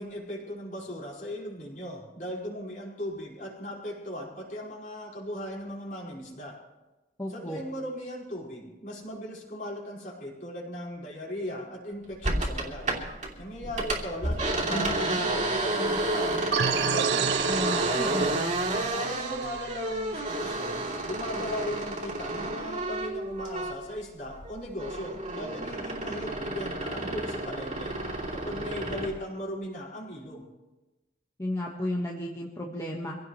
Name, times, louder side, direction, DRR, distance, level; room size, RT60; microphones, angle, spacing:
voice 1, 0.0-6.6 7.3-12.9 13.4-18.1 18.9-28.0 28.3-30.5, equal, 45° left, -3 dB, 5.0 m, -38 dB
voice 2, 7.2-7.6 17.5-18.4 31.4-33.2, left 1 dB, 20° left, -3 dB, 1.4 m, -33 dB
sound 1, 12.2-13.3 13.6-24.0 24.3-29.2, right 2 dB, 40° right, 2.9 m, -30 dB
sound 2, 16.5-21.0, right 9 dB, 65° right, 0.4 m, -31 dB
25.5 x 17.0 x 3.2 m, 1.1 s
head